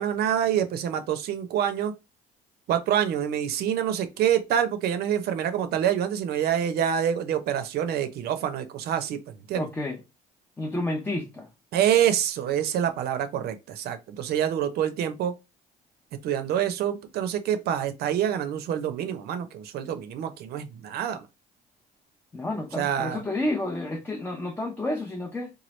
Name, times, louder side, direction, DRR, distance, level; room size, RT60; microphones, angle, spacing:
voice 1, 0.0-1.9 2.7-9.2 9.5-9.7 11.7-15.3 16.2-21.2 22.8-23.2, right 9 dB, 70° right, 0.5 m, -26 dB
voice 2, 9.5-10.0 10.6-11.5 22.3-25.5, left 2 dB, 10° left, 0.5 m, -30 dB
3.0 x 2.3 x 3.0 m
cardioid pair, 110°, 17 cm